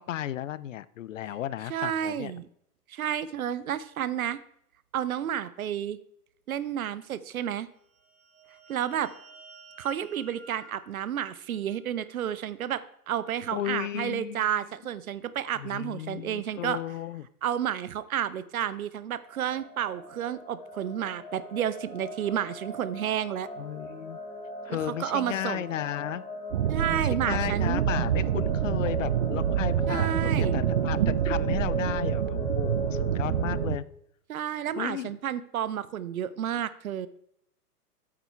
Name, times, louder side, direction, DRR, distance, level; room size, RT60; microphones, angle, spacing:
voice 1, 0.0-2.3 13.5-14.4 15.6-17.3 23.6-24.2 24.6-26.2 26.9-33.8 34.8-35.2, left 12 dB, 55° left, 18 dB, 0.5 m, -34 dB
voice 2, 1.7-2.5 2.9-4.4 4.9-6.0 6.5-7.7 8.7-9.1 9.8-16.8 17.4-23.5 24.7-25.6 26.7-27.8 29.9-30.6 34.3-37.1, right 10 dB, 65° right, 16 dB, 0.7 m, -31 dB
sound 1, 7.8-12.3, right 3 dB, 15° right, 2.6 m, -54 dB
sound 2, 19.2-33.7, equal, 10° left, 1.9 m, -38 dB
sound 3, 26.5-33.8, right 10 dB, 35° right, 0.4 m, -27 dB
8.5 x 8.1 x 3.4 m, 0.71 s
figure-of-eight pair, 110°, 46 cm